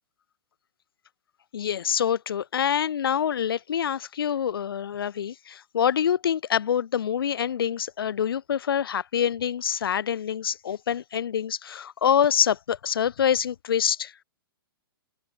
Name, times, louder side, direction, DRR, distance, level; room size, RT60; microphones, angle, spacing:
voice 1, 1.5-14.1, left 8 dB, 75° left, 6.5 m, -26 dB
hypercardioid pair, 170°, 12 cm